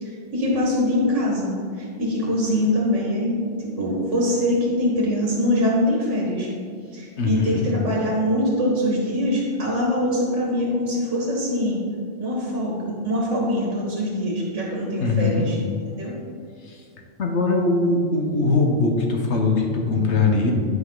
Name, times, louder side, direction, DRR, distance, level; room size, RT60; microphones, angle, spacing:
voice 1, 0.0-6.5 6.9-11.8 12.2-15.6 15.9-16.2, left 1 dB, 75° right, -3 dB, 1.8 m, -23 dB
voice 2, 7.2-7.6 15.0-15.4 16.6-16.8 17.2-20.5, left 3 dB, 70° left, 2 dB, 1.4 m, -21 dB
11.0 x 5.5 x 3.9 m, 2.2 s
omnidirectional pair, 1.2 m